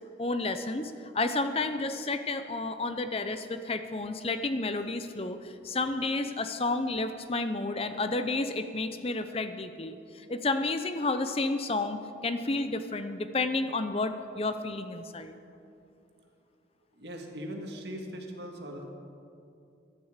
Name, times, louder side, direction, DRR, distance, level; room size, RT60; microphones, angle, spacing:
voice 1, 0.2-15.3, left 2 dB, 30° left, 9 dB, 0.7 m, -31 dB
voice 2, 16.9-19.0, equal, 65° right, 2 dB, 1.9 m, -40 dB
18.0 x 12.5 x 5.0 m, 2.6 s
head